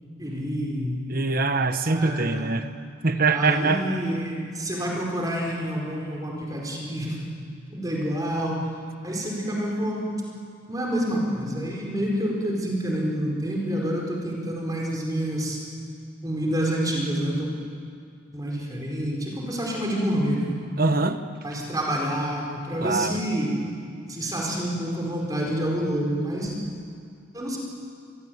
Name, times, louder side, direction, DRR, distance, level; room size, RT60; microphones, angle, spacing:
voice 1, 0.2-1.0 1.9-2.6 3.3-7.4 7.7-8.6 9.0-10.0 10.7-15.6 16.2-17.5 18.3-20.5 21.4-23.5 24.1-26.5 27.3-27.6, equal, 20° right, -1 dB, 4.9 m, -28 dB
voice 2, 1.1-2.7 3.0-4.0 20.8-21.2 22.8-23.2, right 3 dB, 45° right, 9 dB, 1.3 m, -23 dB
26.0 x 22.5 x 9.6 m, 2.3 s
head